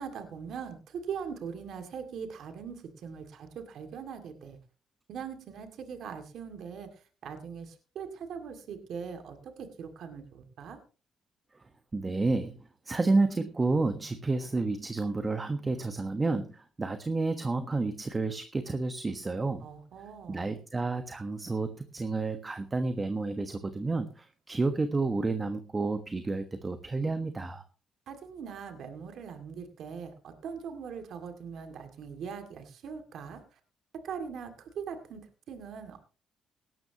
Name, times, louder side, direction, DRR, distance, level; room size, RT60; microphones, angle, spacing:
voice 1, 0.0-4.6 5.1-6.9 7.2-10.8 19.6-20.5 28.1-33.6 34.0-36.0, right 6 dB, 70° right, 7 dB, 2.2 m, -41 dB
voice 2, 11.9-12.6 12.8-19.7 20.3-27.6, right 3 dB, 25° right, 8 dB, 1.3 m, -30 dB
17.5 x 12.5 x 2.9 m, 0.35 s
cardioid pair, 90°, 0 cm